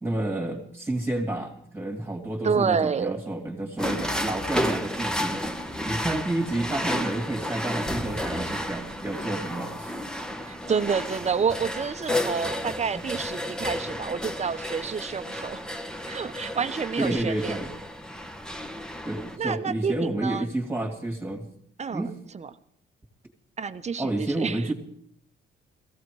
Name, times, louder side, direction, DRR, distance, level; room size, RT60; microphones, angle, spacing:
voice 1, 0.0-9.9 17.0-17.7 19.0-21.5 21.9-22.2 24.0-24.7, right 1 dB, 10° right, 1 dB, 2.4 m, -30 dB
voice 2, 2.4-3.2 10.5-15.6 16.1-17.6 19.4-20.5 21.8-22.5 23.6-24.7, right 6 dB, 35° right, 11 dB, 1.0 m, -29 dB
sound 1, 3.8-19.4, left 1 dB, 5° left, 1.2 m, -32 dB
16.5 x 15.0 x 4.8 m, 0.67 s
cardioid pair, 90°, 20 cm